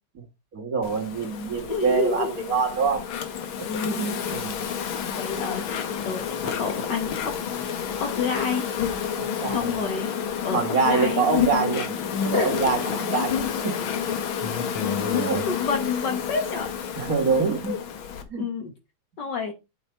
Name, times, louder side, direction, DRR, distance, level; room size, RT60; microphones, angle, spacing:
voice 1, 0.5-3.1 3.6-4.6 9.2-9.7 10.5-11.9 12.2-13.7 15.1-15.5 17.0-17.7 18.3-18.4, right 4 dB, 45° right, 3 dB, 2.0 m, -25 dB
Insect, 0.8-18.2, left 7 dB, 75° left, 1.9 m, -29 dB
voice 2, 1.7-2.3 3.6-4.0 4.9-7.3 8.0-8.7 9.5-10.1 10.4-11.2 12.3-12.6 15.5-16.7 17.7-17.8 18.4-18.7 19.2-19.5, left 5 dB, 60° left, 6 dB, 1.7 m, -29 dB
8.3 x 5.6 x 4.4 m, 0.25 s
omnidirectional pair, 2.3 m